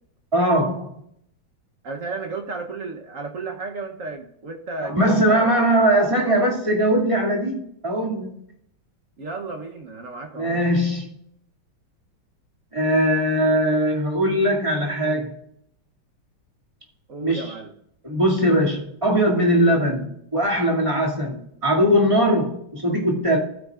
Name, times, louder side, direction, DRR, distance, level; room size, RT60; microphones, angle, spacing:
voice 1, 0.3-0.9 4.8-8.3 10.4-11.1 12.7-15.3 17.2-17.5 18.0-23.4, equal, 15° right, -4 dB, 2.4 m, -20 dB
voice 2, 1.8-5.7 9.2-10.6 17.1-17.7, right 3 dB, 50° right, 3 dB, 1.2 m, -33 dB
15.0 x 9.1 x 2.5 m, 0.72 s
omnidirectional pair, 2.2 m